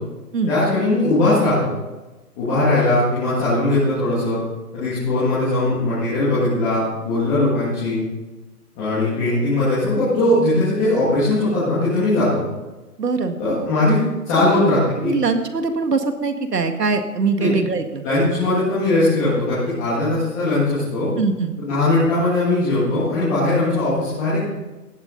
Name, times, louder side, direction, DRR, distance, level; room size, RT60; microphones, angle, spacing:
voice 1, 0.5-1.7 2.4-4.4 4.7-8.0 8.8-12.4 13.4-14.0 14.3-15.1 17.4-17.5 18.0-21.1 21.6-24.5, left 2 dB, 10° left, -12 dB, 2.3 m, -19 dB
voice 2, 13.0-13.4 14.3-14.6 15.0-18.0 21.2-21.6, right 4 dB, 80° right, 7 dB, 2.0 m, -22 dB
17.0 x 12.5 x 4.1 m, 1.1 s
hypercardioid pair, 175°, 48 cm